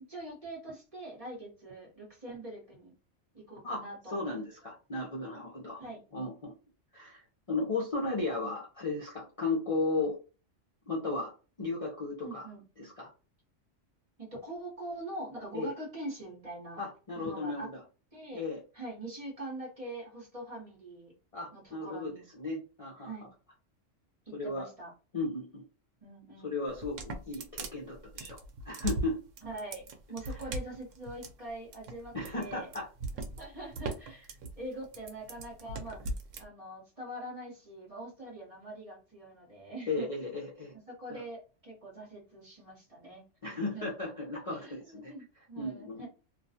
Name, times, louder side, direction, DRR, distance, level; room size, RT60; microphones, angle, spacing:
voice 1, 0.1-2.9 3.3-4.4 5.8-6.0 12.2-12.6 14.2-16.8 17.1-17.7 18.1-18.4 18.7-21.1 21.5-22.2 23.0-23.3 24.3-24.9 26.0-26.5 29.4-32.7 33.4-36.1 36.4-40.1 40.9-43.2 43.7-43.9 44.5-46.1, right 1 dB, 30° right, -4 dB, 1.1 m, -43 dB
voice 2, 3.6-5.8 6.1-6.5 6.9-10.2 10.9-11.3 11.6-12.5 12.8-13.1 15.5-15.7 16.8-17.8 18.3-18.6 21.3-23.1 24.3-24.7 25.1-25.6 26.4-28.4 28.6-29.2 30.3-30.4 32.1-32.9 39.9-40.7 41.1-41.2 43.4-45.1 45.6-46.1, left 3 dB, 40° left, -4 dB, 0.6 m, -35 dB
sound 1, 26.7-36.4, right 2 dB, 85° right, 0.9 m, -39 dB
2.4 x 2.2 x 2.7 m, 0.34 s
omnidirectional pair, 1.3 m